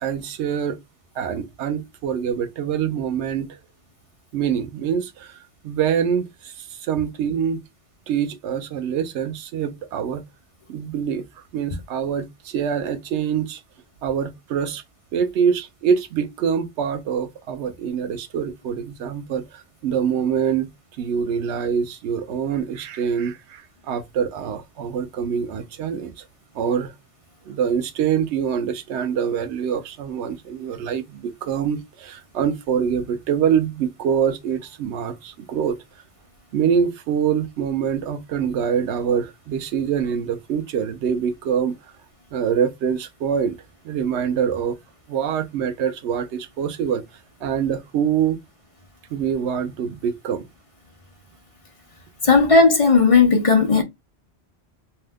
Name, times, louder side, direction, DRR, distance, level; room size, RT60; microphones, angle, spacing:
voice 1, 0.0-0.8 1.2-3.6 4.3-7.6 8.1-10.2 10.7-11.2 11.5-13.6 14.0-14.8 15.1-20.7 21.0-26.2 26.5-26.9 27.5-35.8 36.5-41.8 42.3-43.6 43.8-44.8 45.1-47.0 47.4-48.4 49.1-50.5, right 7 dB, 90° right, 0.9 m, -25 dB
voice 2, 52.2-53.8, left 4 dB, 40° left, 0.5 m, -15 dB
2.7 x 2.1 x 3.4 m
omnidirectional pair, 1.1 m